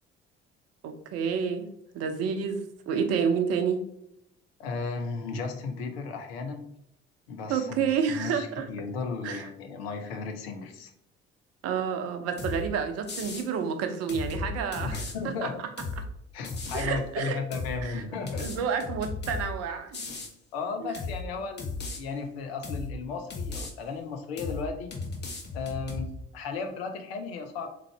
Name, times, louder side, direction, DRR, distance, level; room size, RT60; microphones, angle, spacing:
voice 1, 0.8-1.6 1.9-3.8 7.5-8.6 9.2-9.5 11.6-15.0 15.4-15.5 16.7-17.4 17.8-18.0 18.4-20.0 20.8-20.9, right 6 dB, 50° right, 7 dB, 0.7 m, -29 dB
voice 2, 4.6-6.6 7.3-10.9 14.8-15.6 16.3-18.4 20.2-20.3 20.5-24.9 25.5-27.7, left 4 dB, 70° left, 6 dB, 0.7 m, -35 dB
sound 1, 12.4-12.6 13.1-13.5 14.1-15.1 15.8-16.0 16.4-16.9 17.5-17.8 18.3-19.5 19.9-20.3 20.9-21.2 21.6-22.0 22.6-22.9 23.3-23.7 24.4-24.6 24.9-26.1, left 4 dB, 35° left, 0.9 m, -35 dB
3.7 x 3.3 x 3.3 m, 0.78 s
figure-of-eight pair, 50°, 32 cm